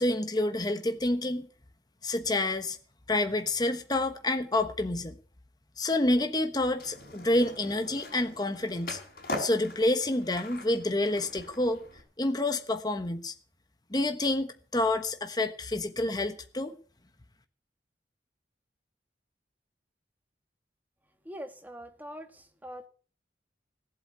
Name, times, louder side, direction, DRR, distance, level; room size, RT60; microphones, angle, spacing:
voice 1, 0.0-1.5 2.0-2.8 3.1-5.2 5.8-9.0 9.4-11.8 12.2-13.3 13.9-16.8, left 2 dB, 20° left, 1.2 m, -28 dB
Skateboard, 6.8-12.0, left 2 dB, 55° left, 5.2 m, -41 dB
voice 2, 21.2-22.9, equal, 10° right, 1.7 m, -43 dB
17.5 x 8.3 x 8.1 m
head